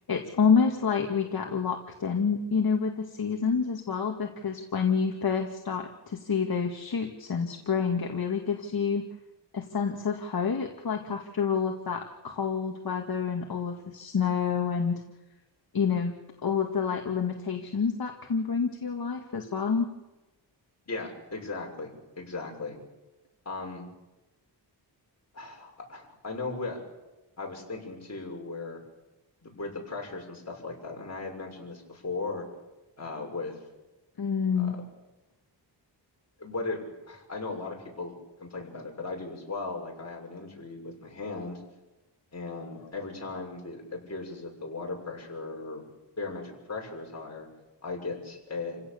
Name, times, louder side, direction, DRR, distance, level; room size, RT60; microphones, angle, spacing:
voice 1, 0.1-9.0 9.5-15.0 15.7-16.1 16.4-19.9 34.2-34.8, left 6 dB, 55° left, 2 dB, 2.1 m, -28 dB
voice 2, 20.9-22.8 23.4-23.9 25.3-26.8 27.4-28.8 29.4-32.4 33.0-33.6 34.6-34.8 36.4-41.6 42.3-45.8 46.2-47.5 47.8-48.8, left 3 dB, 40° left, -1 dB, 6.7 m, -37 dB
29.0 x 16.5 x 7.1 m, 1.0 s
wide cardioid pair, 110°, 42 cm